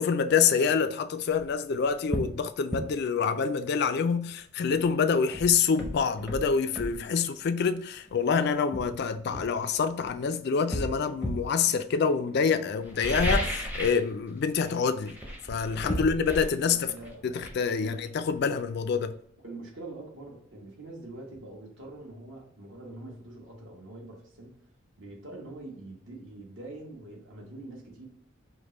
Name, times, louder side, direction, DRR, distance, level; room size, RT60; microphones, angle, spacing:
voice 1, 0.0-15.2 15.5-16.9 17.2-19.1, left 6 dB, 50° left, 0.3 m, -26 dB
sound 1, 1.4-1.5 2.1-2.4 2.7-2.9 4.8-4.9 5.3-7.0 8.1-8.2 8.7-10.1 10.7-11.5 12.8-14.1 14.3-14.7 15.0-18.6 18.9-19.0, equal, 5° right, 0.6 m, -34 dB
voice 2, 16.6-17.2 17.8-18.0 19.4-24.6 25.0-28.0, right 2 dB, 65° right, 1.2 m, -44 dB
5.1 x 2.1 x 3.0 m
head